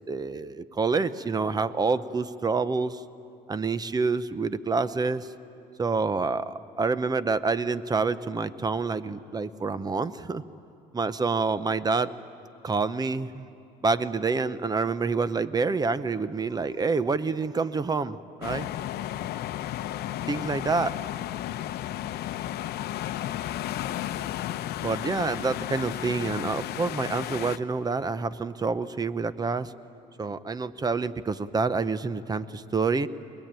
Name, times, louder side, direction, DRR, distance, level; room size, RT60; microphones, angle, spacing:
voice 1, 0.1-3.0 3.5-5.3 5.8-10.4 10.9-12.1 12.6-13.5 13.8-18.7 20.3-20.9 24.8-29.7 30.2-33.1, right 4 dB, 25° right, 15 dB, 0.7 m, -27 dB
sound 1, 18.4-27.6, left 13 dB, 70° left, 0.7 m, -33 dB
23.5 x 21.0 x 8.9 m, 2.8 s
cardioid pair, 110°, 17 cm